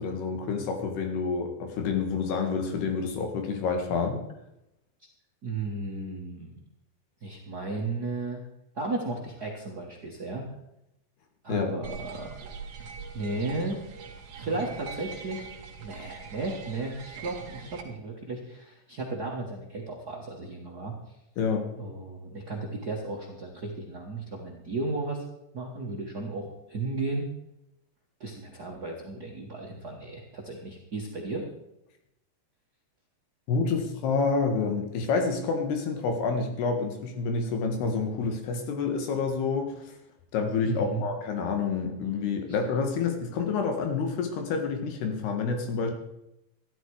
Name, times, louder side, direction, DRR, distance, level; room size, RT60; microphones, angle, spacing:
voice 1, 0.0-4.2 11.5-11.7 21.4-21.6 33.5-39.9 40.3-45.9, left 5 dB, 80° left, 5 dB, 3.9 m, -28 dB
voice 2, 5.4-6.6 7.2-8.4 8.7-10.4 11.4-12.5 13.1-14.0 14.3-15.4 15.8-21.1 21.8-25.2 25.5-27.3 28.2-31.4 40.7-41.0 42.5-42.6, right 2 dB, 75° right, -1 dB, 0.9 m, -34 dB
sound 1, 11.8-17.8, right 6 dB, 50° right, 2.1 m, -42 dB
13.5 x 12.0 x 4.8 m, 0.85 s
omnidirectional pair, 4.6 m